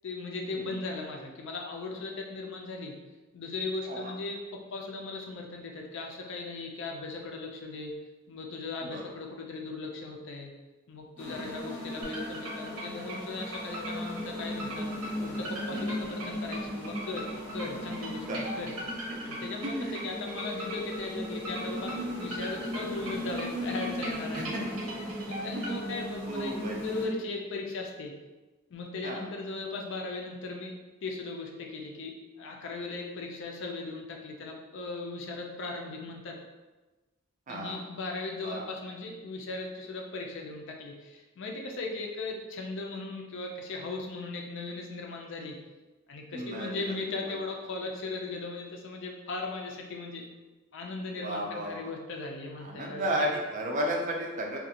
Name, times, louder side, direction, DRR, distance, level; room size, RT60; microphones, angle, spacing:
voice 1, 0.0-2.9 3.3-7.9 8.3-10.5 10.9-14.9 15.2-18.7 19.2-24.7 25.3-26.5 26.8-28.1 28.7-36.4 37.5-45.6 46.1-50.3 50.7-53.1, left 3 dB, 60° left, 1 dB, 0.4 m, -38 dB
sound 1, 11.2-27.1, equal, 10° left, 0.6 m, -37 dB
sound 2, 12.0-25.7, right 1 dB, 85° right, 0.8 m, -40 dB
voice 2, 19.6-20.0 24.3-24.7 26.3-26.7 29.0-29.3 37.5-37.8 38.4-38.6 46.3-46.7 51.2-51.8 52.6-54.6, right 1 dB, 35° right, -1 dB, 0.4 m, -33 dB
2.5 x 2.2 x 2.8 m, 1.2 s
head